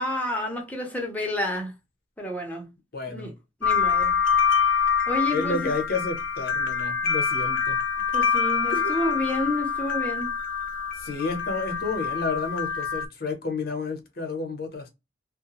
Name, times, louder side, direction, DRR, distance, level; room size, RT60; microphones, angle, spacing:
voice 1, 0.0-1.7 2.2-2.7 3.1-3.3 3.6-4.1 5.1-5.7 8.1-10.3, left 1 dB, 10° left, 0.8 m, -29 dB
voice 2, 2.9-3.3 5.3-7.8 8.7-8.9 11.0-14.9, left 3 dB, 55° left, 0.8 m, -31 dB
sound 1, 3.6-13.1, left 6 dB, 80° left, 0.5 m, -25 dB
2.4 x 2.2 x 2.9 m
head